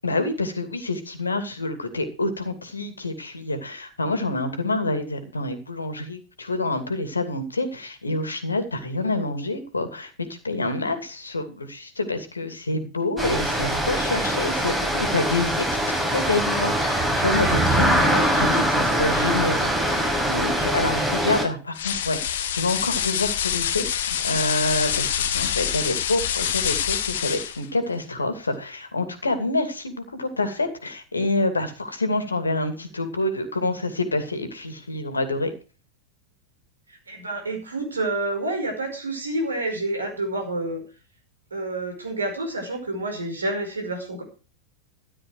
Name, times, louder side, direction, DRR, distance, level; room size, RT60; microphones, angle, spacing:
voice 1, 0.0-35.5, left 2 dB, 75° left, 10 dB, 2.6 m, -27 dB
sound 1, 13.2-21.4, right 1 dB, 10° right, 6.2 m, -23 dB
sound 2, 21.8-27.7, left 9 dB, 60° left, 1.2 m, -26 dB
voice 2, 37.1-40.8 41.5-44.2, right 2 dB, 75° right, 5 dB, 5.0 m, -28 dB
14.0 x 10.5 x 4.8 m, 0.34 s
figure-of-eight pair, 90°, 0 cm